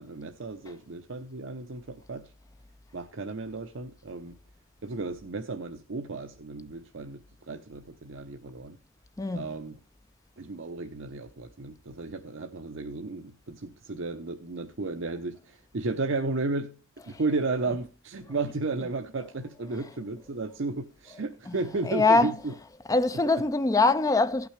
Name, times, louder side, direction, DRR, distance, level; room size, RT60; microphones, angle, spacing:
voice 1, 0.0-2.3 2.9-4.4 4.8-8.8 9.3-9.8 10.4-16.8 17.1-22.5, right 3 dB, 65° right, 0.7 m, -34 dB
voice 2, 21.8-22.3 22.9-24.5, left 3 dB, 15° left, 0.4 m, -23 dB
17.5 x 5.9 x 3.2 m
head